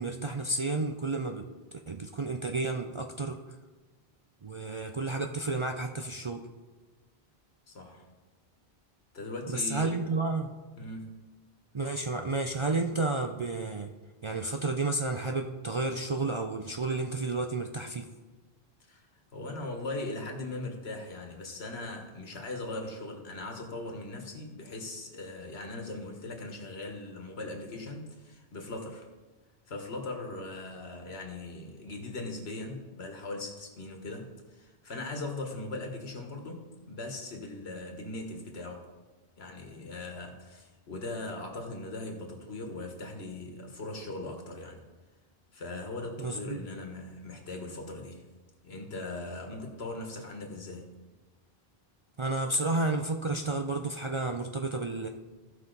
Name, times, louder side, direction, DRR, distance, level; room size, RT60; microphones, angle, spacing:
voice 1, 0.0-1.4 1.9-3.4 4.4-6.5 9.5-10.5 11.7-13.9 14.2-18.1 46.2-46.7 52.2-55.1, right 3 dB, 40° right, 4 dB, 0.4 m, -31 dB
voice 2, 7.7-8.1 9.1-10.0 10.8-11.1 18.9-19.0 19.3-29.1 29.7-38.9 39.4-44.9 45.5-48.2 48.6-50.9, left 2 dB, 80° left, 3 dB, 1.6 m, -39 dB
15.0 x 5.6 x 3.9 m, 1.2 s
omnidirectional pair, 1.1 m